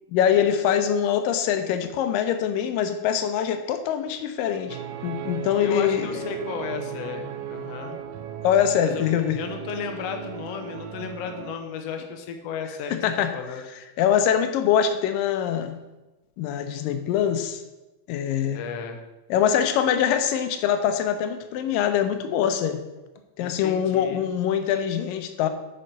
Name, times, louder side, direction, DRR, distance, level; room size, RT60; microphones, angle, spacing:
voice 1, 0.1-6.2 8.4-9.4 12.9-13.3 14.0-15.8 16.4-17.6 18.1-18.6 19.3-22.8 23.4-25.5, left 9 dB, 90° left, 9 dB, 2.4 m, -23 dB
sound 1, 4.7-11.6, right 9 dB, 85° right, 2.3 m, -36 dB
voice 2, 5.6-8.0 8.8-9.1 9.4-13.0 13.3-13.6 18.5-19.0 23.4-24.3, left 6 dB, 65° left, 4 dB, 1.7 m, -34 dB
8.6 x 6.3 x 5.2 m, 1.1 s
omnidirectional pair, 3.9 m